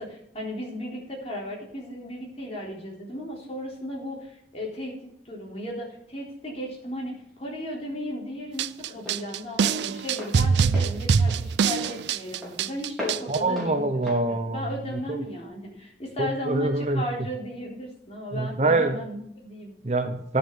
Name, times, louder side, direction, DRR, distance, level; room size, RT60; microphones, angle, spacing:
voice 1, 0.0-14.0 14.5-19.7, equal, 35° left, -3 dB, 3.7 m, -35 dB
Walk footsteps, 6.8-15.5, left 1 dB, ahead, 4.4 m, -41 dB
sound 1, 8.6-13.4, right 6 dB, 70° right, 0.4 m, -23 dB
voice 2, 13.3-14.7 15.1-15.2 16.2-17.0 18.3-19.0 19.8-20.4, right 2 dB, 35° right, 8 dB, 0.7 m, -25 dB
10.5 x 7.0 x 6.9 m, 0.72 s
head